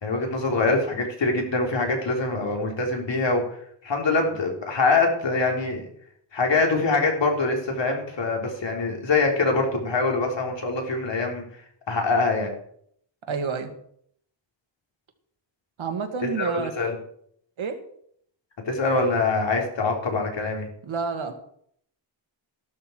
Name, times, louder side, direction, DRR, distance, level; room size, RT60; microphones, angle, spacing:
voice 1, 0.0-3.4 3.8-5.9 6.3-11.4 11.9-12.5 16.4-17.0 18.7-20.7, left 3 dB, 65° left, 1 dB, 3.7 m, -24 dB
voice 2, 13.3-13.7 15.8-16.7 17.6-17.8 20.8-21.3, right 5 dB, 85° right, 5 dB, 2.3 m, -29 dB
14.5 x 12.5 x 4.6 m, 0.65 s
wide cardioid pair, 135°, 46 cm